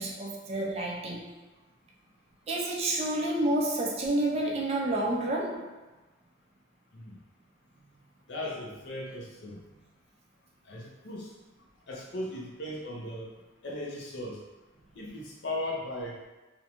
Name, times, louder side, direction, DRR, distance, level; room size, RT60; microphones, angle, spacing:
voice 1, 0.0-1.4 2.5-5.7, right 1 dB, 30° right, -2 dB, 0.4 m, -29 dB
voice 2, 8.3-9.6 10.6-11.3 11.9-13.3 13.6-14.4 15.0-16.2, left 1 dB, 65° left, -2 dB, 0.6 m, -37 dB
2.5 x 2.1 x 2.8 m, 1.2 s
head